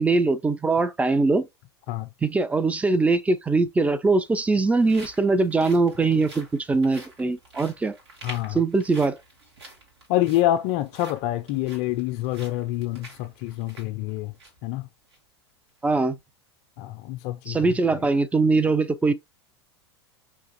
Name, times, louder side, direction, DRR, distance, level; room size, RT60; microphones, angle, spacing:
voice 1, 0.0-1.5 2.2-8.0 8.5-9.2 15.8-16.2 17.5-19.1, right 3 dB, 10° right, 0.4 m, -22 dB
sound 1, 4.2-14.7 15.0-15.2 15.7-15.9, right 2 dB, 75° right, 2.0 m, -47 dB
voice 2, 8.2-8.6 10.1-14.3 14.6-14.9 16.8-17.9, left 14 dB, 50° left, 0.4 m, -27 dB
5.6 x 2.5 x 2.9 m
hypercardioid pair, 90°, 14 cm